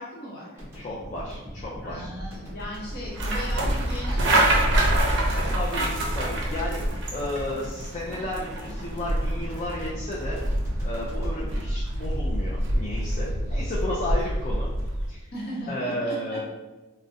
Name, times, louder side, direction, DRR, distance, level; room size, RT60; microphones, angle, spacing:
voice 1, 0.0-0.6 1.8-5.5 15.3-16.4, equal, 45° left, -5 dB, 0.9 m, -37 dB
sound 1, 0.6-12.8, equal, 10° right, 0.8 m, -40 dB
voice 2, 0.7-2.1 5.3-6.8 7.1-10.4 10.8-14.7 15.1-15.3 15.7-16.4, left 1 dB, 30° left, -5 dB, 0.3 m, -33 dB
sound 2, 2.9-15.1, right 1 dB, 55° right, 0.5 m, -26 dB
3.5 x 2.1 x 2.6 m, 1.1 s
head